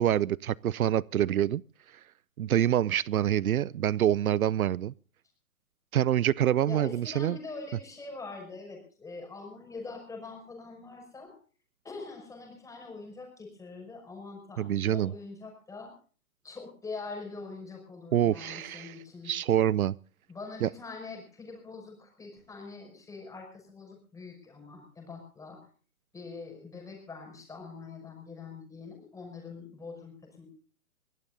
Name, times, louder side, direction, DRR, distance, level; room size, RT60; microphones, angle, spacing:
voice 1, 0.0-1.6 2.4-4.9 5.9-7.4 14.6-15.1 18.1-18.9 19.3-19.9 20.6-20.7, right 11 dB, 75° right, 0.6 m, -26 dB
voice 2, 6.7-11.4 11.8-15.9 16.4-19.3 20.3-25.7 26.1-30.5, left 4 dB, 5° left, 6.3 m, -44 dB
24.0 x 18.0 x 2.6 m
hypercardioid pair, 140°, 42 cm